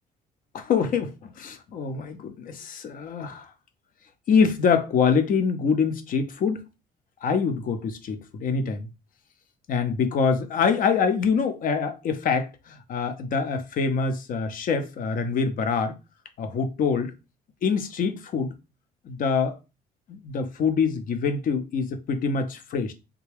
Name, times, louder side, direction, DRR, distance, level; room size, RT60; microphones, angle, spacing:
voice 1, 0.5-3.5 4.3-6.6 7.2-8.9 9.7-16.0 16.4-17.1 17.6-18.5 19.1-19.6 20.1-22.9, left 5 dB, 55° left, 0.6 m, -25 dB
3.4 x 2.2 x 3.3 m
cardioid pair, 110°, 17 cm